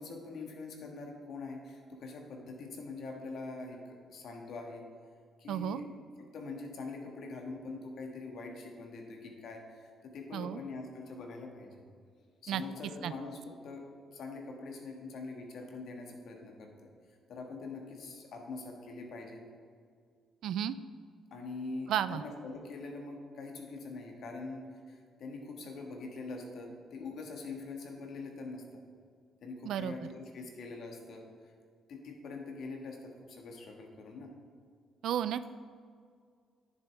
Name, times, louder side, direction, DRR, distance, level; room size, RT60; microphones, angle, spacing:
voice 1, 0.0-4.8 5.4-5.9 6.3-11.8 12.4-13.8 14.1-16.9 17.3-19.4 21.3-28.6 29.4-31.5 31.9-34.3, left 3 dB, 70° left, 2 dB, 1.5 m, -44 dB
voice 2, 5.5-5.8 10.3-10.6 12.5-12.6 13.0-13.1 20.4-20.8 21.9-22.2 29.6-29.9 35.0-35.6, right 10 dB, 80° right, 14 dB, 0.3 m, -32 dB
10.5 x 7.0 x 3.4 m, 2.1 s
cardioid pair, 90°, 0 cm